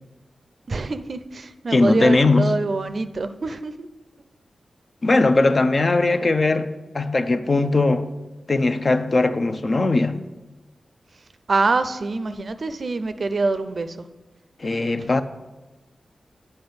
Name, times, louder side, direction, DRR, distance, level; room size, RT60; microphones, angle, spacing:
voice 1, 0.7-3.9 11.5-14.1 15.0-15.1, right 3 dB, 55° right, 0.5 m, -25 dB
voice 2, 1.7-2.5 5.0-8.1 8.5-10.2 14.6-15.2, left 2 dB, 40° left, 0.6 m, -19 dB
8.5 x 5.5 x 7.9 m
wide cardioid pair, 95°, 0 cm